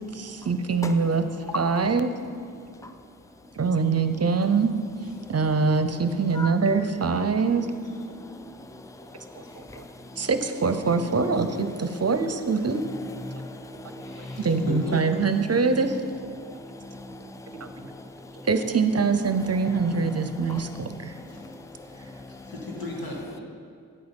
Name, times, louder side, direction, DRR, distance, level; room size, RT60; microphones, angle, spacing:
voice 1, 0.1-1.2 1.5-2.1 3.5-4.7 5.3-7.7 9.8-9.9 10.2-12.8 14.4-16.0 17.6-17.9 18.5-21.1, right 4 dB, 45° right, 9 dB, 0.7 m, -24 dB
voice 2, 8.2-10.3 13.2-14.5 16.4-18.5 20.5-20.6 21.0-22.5, left 2 dB, 10° left, 7 dB, 0.6 m, -41 dB
voice 3, 14.0-15.0 21.3-21.5 22.3-23.4, left 2 dB, 85° left, -2 dB, 2.0 m, -36 dB
9.0 x 7.8 x 5.3 m, 2.3 s
cardioid pair, 60°, 35 cm